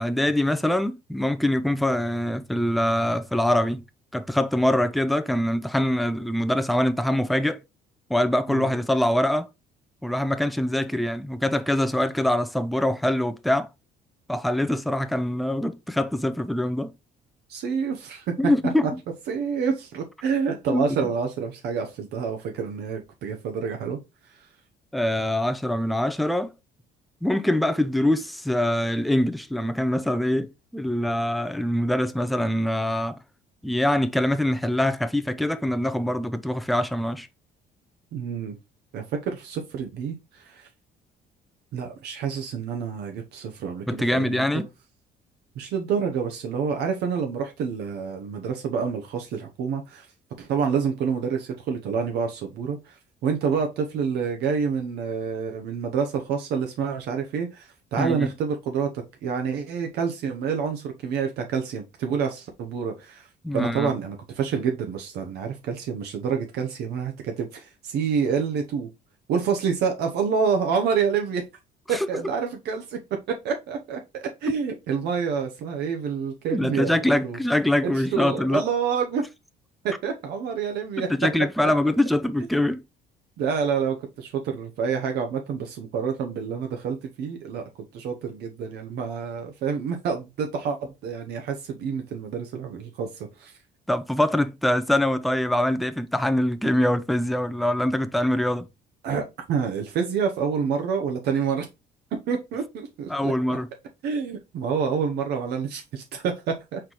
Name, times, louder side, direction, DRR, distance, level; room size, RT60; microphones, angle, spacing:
voice 1, 0.0-3.8 4.1-7.6 8.1-9.5 10.0-13.7 14.3-16.9 18.4-18.9 20.7-21.0 24.9-26.5 27.2-33.2 33.6-37.3 43.9-44.7 58.0-58.3 63.4-63.9 71.9-72.1 76.5-78.7 81.1-82.8 93.9-98.6 103.1-103.7, left 1 dB, ahead, 0.4 m, -24 dB
voice 2, 17.5-18.3 19.3-24.0 38.1-38.6 38.9-40.7 41.7-44.6 45.6-50.1 50.4-63.3 63.5-68.9 69.3-71.4 71.9-73.0 73.3-77.4 77.8-79.2 79.8-81.1 81.6-81.7 83.4-87.6 87.9-93.6 99.0-101.7 102.3-103.6 104.0-106.8, right 6 dB, 75° right, 0.9 m, -28 dB
4.4 x 4.0 x 3.0 m
cardioid pair, 110°, 17 cm